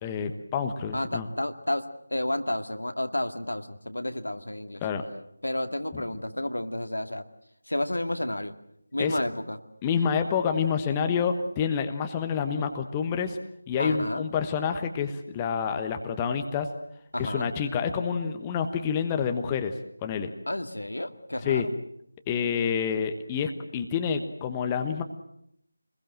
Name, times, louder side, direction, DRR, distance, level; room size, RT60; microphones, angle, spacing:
voice 1, 0.0-1.3 4.8-5.0 5.9-6.0 9.0-9.2 9.8-13.4 13.7-16.7 17.2-19.7 20.0-20.3 21.4-21.7 22.3-25.0, left 6 dB, 15° left, 6 dB, 1.2 m, -28 dB
voice 2, 0.9-1.8 2.1-4.8 5.4-7.2 7.7-8.5 8.9-9.6 13.8-14.2 17.1-17.5 20.5-21.7, left 1 dB, 75° left, 8 dB, 2.1 m, -31 dB
26.0 x 21.0 x 7.7 m, 0.72 s
figure-of-eight pair, 165°, 0 cm